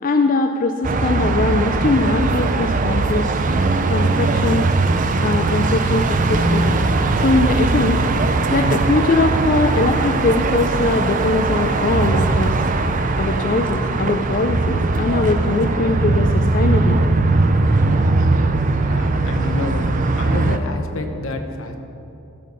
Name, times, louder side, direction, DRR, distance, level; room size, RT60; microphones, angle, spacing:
voice 1, 0.0-3.3 3.9-4.7 5.2-6.8 7.2-8.1 8.5-12.6 13.2-17.1 18.2-18.3, left 3 dB, 40° left, 5 dB, 0.4 m, -21 dB
sound 1, 0.8-20.6, right 3 dB, 35° right, 0.5 m, -19 dB
voice 2, 18.4-19.8 20.1-21.8, left 2 dB, 70° left, 5 dB, 1.0 m, -28 dB
13.0 x 5.3 x 6.5 m, 2.8 s
head